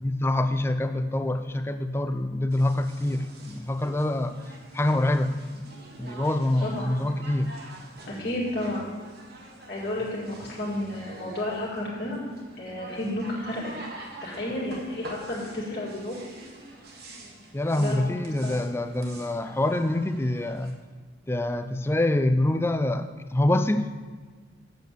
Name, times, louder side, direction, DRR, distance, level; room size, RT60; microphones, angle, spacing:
voice 1, 0.0-4.4 4.7-5.7 6.0-7.5 17.5-20.8 21.3-24.0, left 1 dB, 10° left, 9 dB, 0.4 m, -26 dB
sound 1, 2.5-20.7, right 1 dB, 50° right, 1.5 m, -46 dB
voice 2, 6.6-7.0 8.1-8.9 9.7-12.2 12.6-13.7 14.2-16.2 17.8-18.1 18.4-18.6, left 1 dB, 50° left, -6 dB, 2.1 m, -32 dB
8.3 x 6.3 x 6.7 m, 1.5 s
head